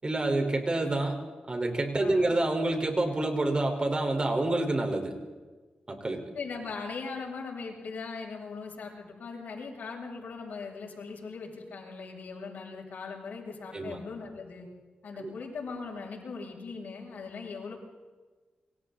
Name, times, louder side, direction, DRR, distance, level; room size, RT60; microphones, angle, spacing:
voice 1, 0.0-1.2 1.5-5.1 5.9-6.2 13.7-14.0 15.2-15.3, right 2 dB, 30° right, 4 dB, 4.6 m, -28 dB
voice 2, 2.0-2.4 6.3-14.7 15.0-17.8, left 4 dB, 75° left, -1 dB, 7.8 m, -40 dB
28.5 x 24.5 x 4.2 m, 1.3 s
cardioid pair, 70°, 3 cm